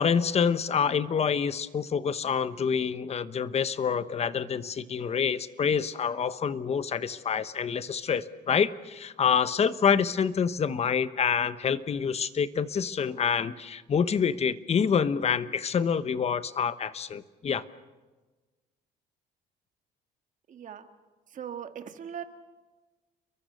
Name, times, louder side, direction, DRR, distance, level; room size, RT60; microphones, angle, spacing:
voice 1, 0.0-17.6, left 7 dB, 40° left, 14 dB, 1.1 m, -27 dB
voice 2, 20.5-20.9 21.3-22.2, right 8 dB, 50° right, 7 dB, 2.1 m, -39 dB
30.0 x 23.0 x 6.6 m, 1.3 s
cardioid pair, 110°, 17 cm